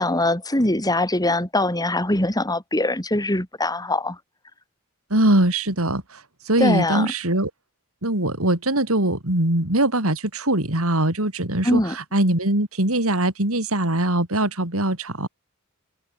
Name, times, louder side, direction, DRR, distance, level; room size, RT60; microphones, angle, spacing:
voice 1, 0.0-4.2 6.6-7.1 11.6-11.9, left 1 dB, 15° left, 5.1 m, -22 dB
voice 2, 5.1-6.2 6.5-7.5 8.0-15.3, right 1 dB, 75° right, 4.7 m, -22 dB
open air
head